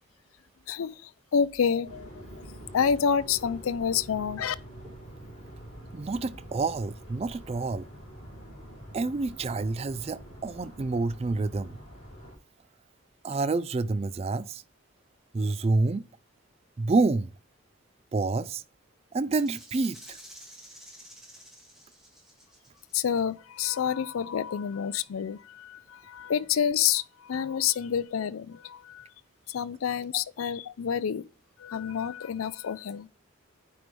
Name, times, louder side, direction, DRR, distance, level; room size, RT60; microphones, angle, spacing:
voice 1, 0.7-2.1 2.7-4.6 22.9-29.1 29.5-31.2 31.6-33.1, left 7 dB, 85° left, 0.4 m, -28 dB
sound 1, 1.8-12.4, equal, 30° left, 3.5 m, -46 dB
voice 2, 5.9-7.9 8.9-11.8 13.2-14.6 15.3-16.1 16.8-17.3 18.1-18.6 19.1-20.2 30.1-30.2, right 3 dB, 30° right, 0.3 m, -28 dB
Rattle (instrument), 19.4-23.2, equal, ahead, 2.2 m, -50 dB
9.1 x 4.8 x 3.2 m
head